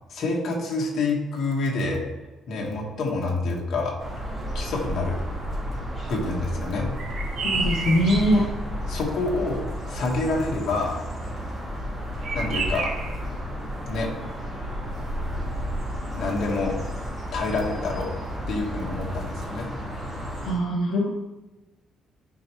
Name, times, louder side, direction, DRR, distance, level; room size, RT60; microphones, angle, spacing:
voice 1, 0.1-2.0 2.5-3.9 4.5-5.2 6.1-6.9 8.9-11.0 12.3-12.9 13.9-14.1 16.2-16.7 17.3-18.1 18.5-19.7, left 3 dB, 55° left, -2 dB, 1.7 m, -27 dB
sound 1, 4.0-20.5, equal, 15° right, 2.3 m, -32 dB
sound 2, 7.0-8.4 12.2-13.2, right 4 dB, 65° right, 1.5 m, -30 dB
voice 2, 7.4-8.4 20.4-21.1, equal, 75° left, -2 dB, 0.9 m, -22 dB
10.5 x 4.5 x 3.2 m, 1.1 s
cardioid pair, 155°, 0 cm